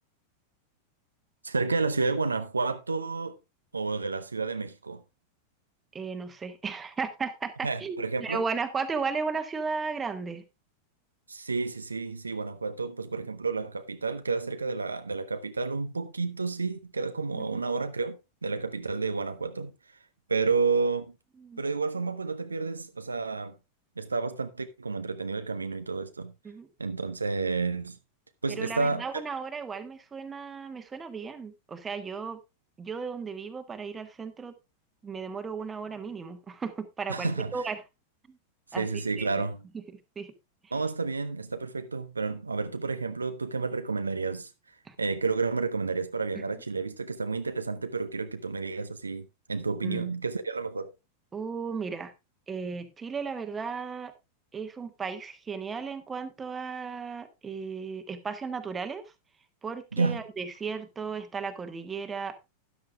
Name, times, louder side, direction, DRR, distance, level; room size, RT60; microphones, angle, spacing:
voice 1, 1.4-3.4 3.7-5.0 7.6-8.4 11.3-19.7 20.3-21.1 21.6-23.5 24.0-26.3 26.8-28.0 28.4-29.0 37.1-37.6 38.8-39.6 40.7-50.9 59.9-60.2, right 4 dB, 80° right, 0.7 m, -30 dB
voice 2, 5.9-10.4 17.3-17.6 21.4-21.6 26.4-26.7 28.5-32.4 32.8-34.5 35.0-37.8 38.3-38.4 38.7-39.5 39.7-39.8 40.1-40.3 40.6-40.7 44.8-44.9 46.3-46.4 49.8-50.1 51.3-52.1 52.5-54.1 54.5-59.0 59.6-62.4, right 5 dB, 15° right, 1.4 m, -35 dB
13.0 x 10.5 x 2.4 m
figure-of-eight pair, 90°, 0 cm